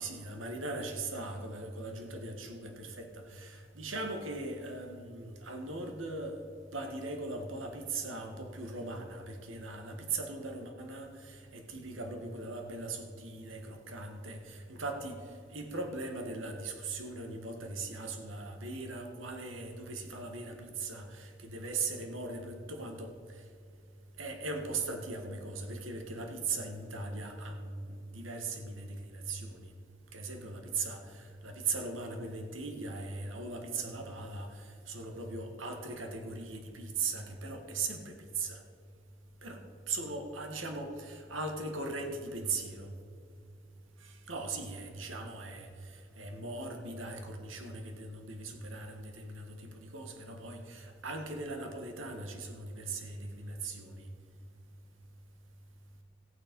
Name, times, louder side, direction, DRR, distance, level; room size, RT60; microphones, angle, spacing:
voice 1, 0.0-6.4 6.7-15.2 15.5-23.1 24.2-29.7 30.1-38.6 39.4-42.9 44.0-54.1, right 3 dB, 90° right, 1.6 m, -39 dB
14.5 x 8.9 x 5.3 m
head